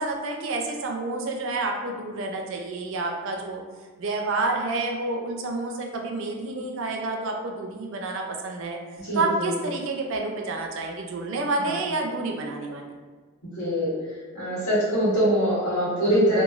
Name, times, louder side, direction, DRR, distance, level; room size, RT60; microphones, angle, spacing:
voice 1, 0.0-3.6 4.0-8.8 9.1-12.9, right 3 dB, 60° right, 2 dB, 0.4 m, -29 dB
voice 2, 9.0-9.5 11.6-11.7 13.6-13.9 14.3-16.4, equal, 85° left, -10 dB, 1.5 m, -23 dB
3.0 x 2.2 x 2.4 m, 1.5 s
head